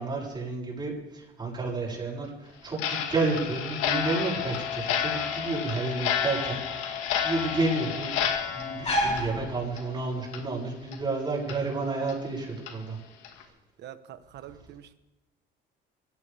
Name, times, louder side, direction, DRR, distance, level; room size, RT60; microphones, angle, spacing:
voice 1, 0.0-7.0 7.2-8.1 8.5-13.0, right 3 dB, 20° right, -5 dB, 6.9 m, -31 dB
Clock, 2.7-10.0 10.3-10.4 10.9-11.0 11.5-11.6 12.1-12.2 12.7-12.8 13.2-13.4, left 8 dB, 90° left, 2.2 m, -31 dB
sound 1, 3.2-10.2, equal, 30° left, 3.3 m, -35 dB
voice 2, 13.8-15.0, right 11 dB, 55° right, 10 dB, 1.3 m, -45 dB
24.0 x 16.5 x 3.6 m, 1.0 s
cardioid pair, 140°, 21 cm